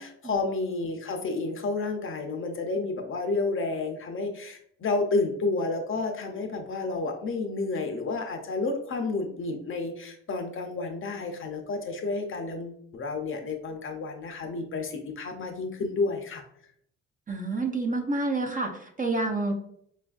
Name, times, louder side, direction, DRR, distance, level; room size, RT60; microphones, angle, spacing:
voice 1, 0.0-16.4, left 3 dB, 45° left, 3 dB, 0.6 m, -30 dB
voice 2, 17.3-19.5, right 2 dB, 25° right, 2 dB, 0.6 m, -28 dB
5.1 x 2.4 x 2.3 m, 0.69 s
cardioid pair, 90°, 30 cm